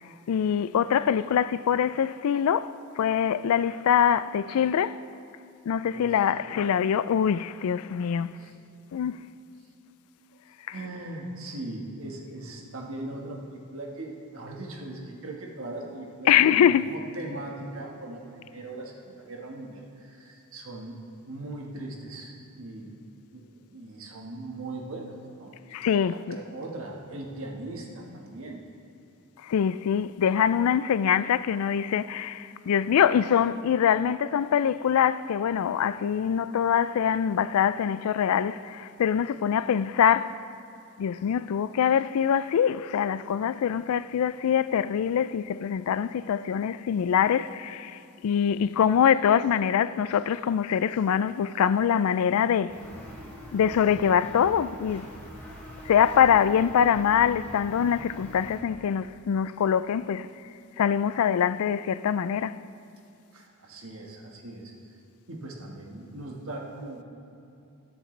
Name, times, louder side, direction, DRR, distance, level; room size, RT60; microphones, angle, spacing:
voice 1, 0.3-5.0 5.7-8.3 8.9-9.2 16.3-16.9 25.7-26.4 29.4-40.4 41.0-52.8 53.5-55.1 55.9-60.3 60.8-62.6, left 8 dB, 80° left, 0.3 m, -24 dB
voice 2, 10.7-23.0 23.3-25.7 26.1-28.6 63.3-64.9 65.3-67.0, right 2 dB, 65° right, 1.6 m, -39 dB
sound 1, 52.7-58.6, equal, 10° left, 2.5 m, -44 dB
20.5 x 8.0 x 3.3 m
head